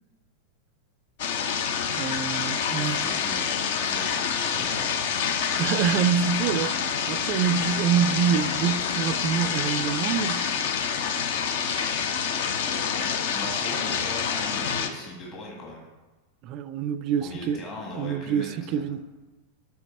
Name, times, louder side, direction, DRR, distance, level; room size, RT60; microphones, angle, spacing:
sound 1, 1.2-14.9, left 7 dB, 55° left, 0.5 m, -27 dB
voice 1, 2.0-3.0 5.6-10.5 16.4-17.6 18.0-19.0, right 8 dB, 40° right, 0.3 m, -26 dB
voice 2, 2.7-3.5 3.8-5.7 6.5-6.8 12.9-15.9 17.2-19.0, left 1 dB, 30° left, 1.5 m, -39 dB
8.0 x 4.8 x 3.2 m
figure-of-eight pair, 90°, 0 cm